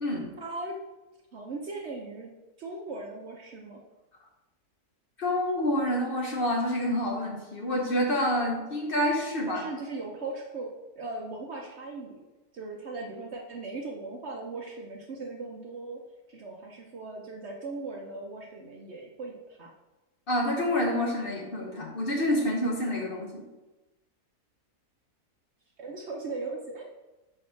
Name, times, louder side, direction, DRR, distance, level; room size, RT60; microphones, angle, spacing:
voice 1, 0.4-0.8 1.3-2.3 2.6-3.8 9.5-10.7 11.0-12.2 12.5-16.0 16.3-19.7 25.8-26.8, right 3 dB, 55° right, 1 dB, 0.8 m, -38 dB
voice 2, 5.2-9.6 20.3-23.4, left 1 dB, 40° left, -1 dB, 1.0 m, -28 dB
5.6 x 4.1 x 5.7 m, 1.1 s
omnidirectional pair, 1.6 m